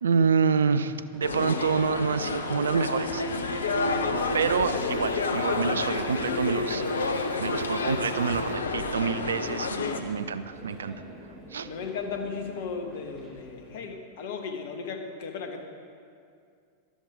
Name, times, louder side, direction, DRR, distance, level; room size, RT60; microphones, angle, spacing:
voice 1, 0.0-3.2 4.3-10.9 11.5-11.7, right 6 dB, 70° right, 13 dB, 0.5 m, -27 dB
Alarm, 1.1-9.7, right 5 dB, 50° right, 2.5 m, -40 dB
sound 1, 1.2-10.0, left 4 dB, 70° left, 0.8 m, -29 dB
sound 2, 7.6-13.8, equal, ahead, 4.1 m, -48 dB
voice 2, 11.6-15.6, left 5 dB, 55° left, 5 dB, 1.4 m, -35 dB
13.0 x 12.5 x 5.1 m, 2.3 s
figure-of-eight pair, 90°, 0 cm